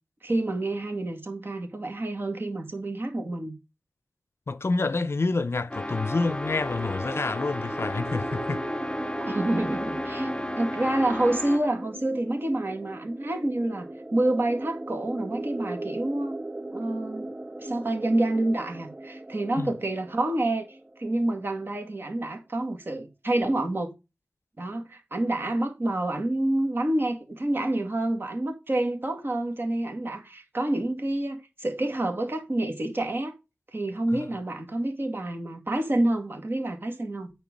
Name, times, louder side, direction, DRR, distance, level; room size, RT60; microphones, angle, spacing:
voice 1, 0.2-3.6 9.3-10.3 10.6-16.4 16.7-17.3 17.6-23.9 24.6-33.3 33.7-37.3, right 1 dB, 50° right, 2.1 m, -28 dB
voice 2, 4.5-8.7 19.6-19.7 34.1-34.3, left 3 dB, 60° left, 0.5 m, -28 dB
sound 1, 5.7-11.8, left 1 dB, 20° left, 0.7 m, -34 dB
sound 2, 5.8-21.4, right 1 dB, 20° right, 0.4 m, -38 dB
9.0 x 4.5 x 5.2 m
wide cardioid pair, 75°, 5 cm